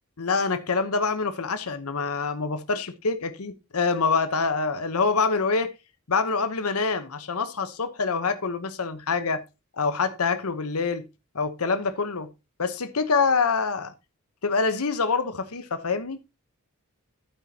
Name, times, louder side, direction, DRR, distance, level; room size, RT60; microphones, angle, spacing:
voice 1, 0.2-5.7 6.1-9.4 9.8-11.1 11.3-12.3 12.6-13.9 14.4-16.2, left 4 dB, 80° left, 1.0 m, -25 dB
11.5 x 9.1 x 2.8 m
head